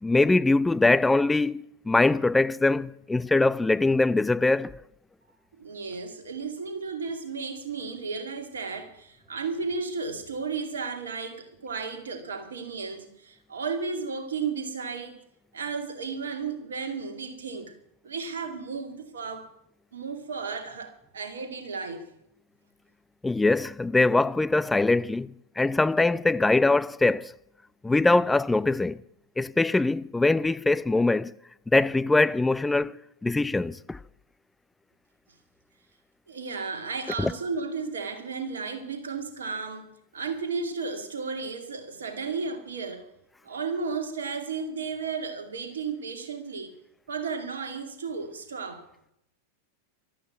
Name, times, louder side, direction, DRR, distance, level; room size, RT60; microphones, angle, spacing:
voice 1, 0.0-4.8 23.2-27.3 27.8-29.0 29.4-31.3 31.7-34.0 37.2-37.3, left 2 dB, 10° left, 0.5 m, -23 dB
voice 2, 5.6-15.2 15.5-17.7 18.0-19.5 19.9-22.0 36.3-43.1 43.4-46.8 47.1-48.9, right 4 dB, 65° right, 2.4 m, -34 dB
12.5 x 12.0 x 8.3 m
figure-of-eight pair, 90°, 0 cm